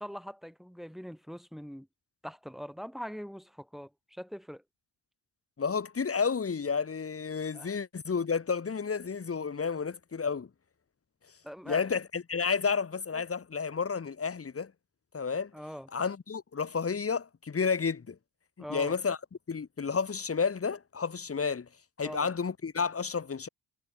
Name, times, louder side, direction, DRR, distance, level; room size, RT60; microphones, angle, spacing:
voice 1, 0.0-1.9 2.2-4.6 7.5-7.8 11.4-11.8 13.1-13.2 15.5-15.9 18.6-19.0 22.0-22.3, equal, ahead, 3.3 m, -42 dB
voice 2, 5.6-10.5 11.7-14.7 15.1-15.5 15.9-18.2 18.7-19.2 19.5-21.7 22.0-23.5, left 5 dB, 30° left, 1.2 m, -31 dB
cardioid pair, 65°, 47 cm